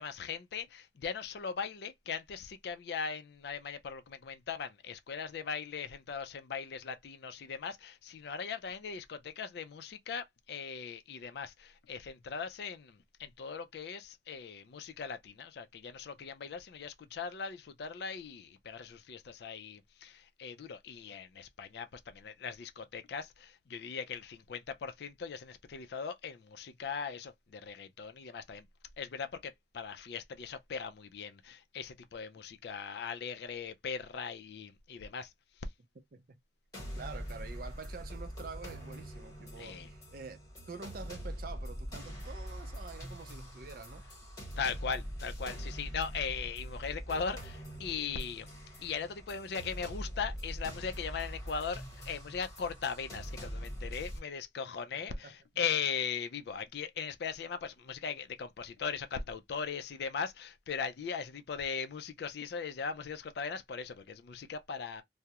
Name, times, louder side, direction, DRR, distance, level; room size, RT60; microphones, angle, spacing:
voice 1, 0.0-28.7 29.0-35.3 35.6-35.7 39.6-39.9 44.6-48.5 48.8-65.0, left 6 dB, 55° left, 0.3 m, -39 dB
sound 1, 36.7-54.2, equal, 20° left, 1.0 m, -43 dB
voice 2, 36.8-40.4 40.7-44.1 54.9-55.4, right 4 dB, 50° right, 0.5 m, -47 dB
2.3 x 2.0 x 2.7 m
head